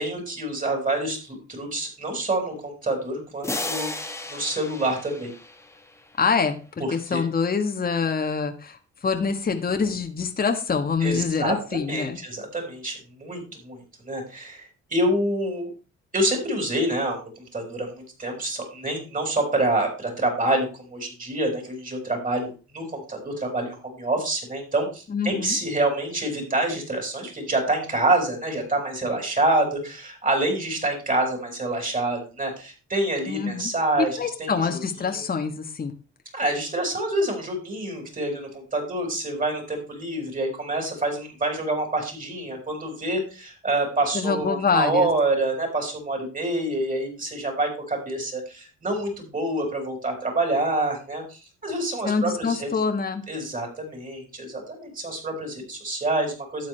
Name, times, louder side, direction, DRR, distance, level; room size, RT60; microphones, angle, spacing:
voice 1, 0.0-5.3 7.1-7.2 11.0-15.7 16.1-34.8 35.1-35.2 36.3-52.7 53.3-56.7, right 2 dB, 25° right, 2 dB, 4.9 m, -27 dB
sound 1, 3.4-6.1, left 2 dB, 10° left, 1.2 m, -34 dB
voice 2, 6.2-12.2 25.1-25.6 33.3-33.7 34.2-35.9 44.1-45.1 52.0-53.2, left 5 dB, 30° left, 5 dB, 1.3 m, -25 dB
12.0 x 8.2 x 3.3 m, 0.34 s
cardioid pair, 90°, 30 cm